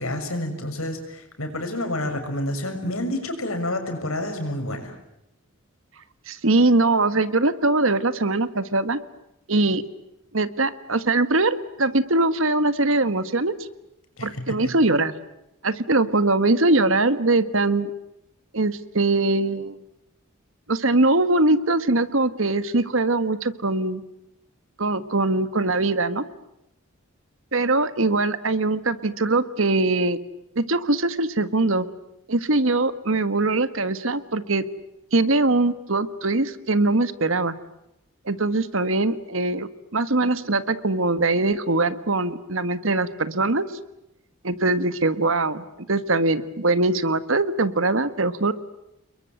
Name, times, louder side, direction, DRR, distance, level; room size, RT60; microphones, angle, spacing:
voice 1, 0.0-4.9 14.2-14.7, left 1 dB, 85° left, 6 dB, 6.5 m, -29 dB
voice 2, 6.3-9.0 9.5-9.8 10.3-13.5 14.2-15.1 15.6-17.9 18.5-19.8 20.7-24.0 24.8-26.2 27.5-30.2 30.5-31.9 32.3-34.6 35.1-37.5 38.3-43.6 44.4-45.6 45.9-48.5, right 2 dB, 75° right, 13 dB, 1.6 m, -22 dB
29.0 x 22.5 x 9.2 m, 0.86 s
head